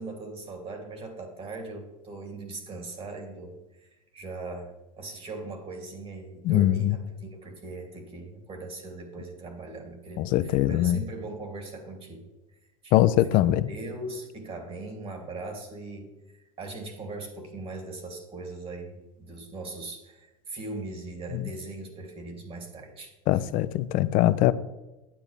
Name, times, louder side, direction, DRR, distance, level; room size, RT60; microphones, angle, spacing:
voice 1, 0.0-12.3 12.8-23.5, right 2 dB, 30° right, 3 dB, 2.8 m, -40 dB
voice 2, 6.5-6.9 10.2-11.0 12.9-13.6 23.3-24.5, left 14 dB, 50° left, 16 dB, 0.6 m, -22 dB
10.0 x 8.9 x 3.4 m, 1.0 s
hypercardioid pair, 90°, 18 cm